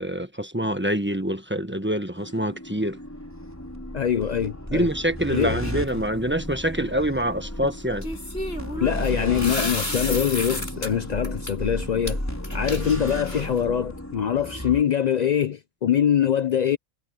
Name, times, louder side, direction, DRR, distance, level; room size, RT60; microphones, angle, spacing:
voice 1, 0.0-3.0 4.7-8.1, equal, 10° right, 1.2 m, -26 dB
sound 1, 2.1-14.8, equal, 10° left, 4.6 m, -34 dB
voice 2, 3.9-4.9 5.3-5.6 8.8-12.2 12.5-16.8, left 9 dB, 75° left, 0.4 m, -23 dB
sound 2, 5.3-6.0 8.0-10.9 11.2-11.5 12.1-12.2 12.4-13.6, left 1 dB, 50° left, 6.5 m, -32 dB
omnidirectional pair, 1.4 m